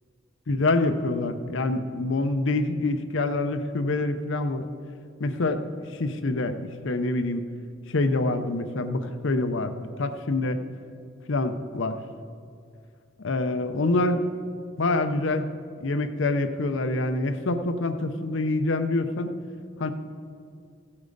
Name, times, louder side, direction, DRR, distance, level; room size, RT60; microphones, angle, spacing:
voice 1, 0.5-4.7 5.2-5.7 5.9-6.6 6.8-7.4 7.9-9.7 10.0-10.6 11.3-12.0 13.2-14.2 14.8-15.5 15.8-19.3 19.8-19.9, left 2 dB, 70° left, 9 dB, 0.6 m, -26 dB
15.5 x 8.6 x 4.0 m, 2.3 s
head